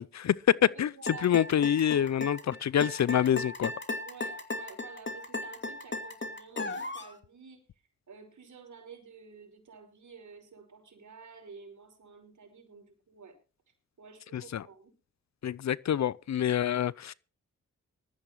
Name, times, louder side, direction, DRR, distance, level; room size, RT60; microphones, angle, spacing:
voice 1, 0.0-0.9 1.2-3.7 14.3-14.6 15.4-17.1, left 10 dB, 60° left, 0.6 m, -26 dB
voice 2, 0.6-1.6 1.9-2.1 4.0-7.6 8.1-13.4 14.0-14.9, right 5 dB, 65° right, 5.5 m, -51 dB
sound 1, 1.1-7.1, left 2 dB, 35° left, 2.6 m, -36 dB
19.5 x 13.5 x 3.1 m
cardioid pair, 45°, 31 cm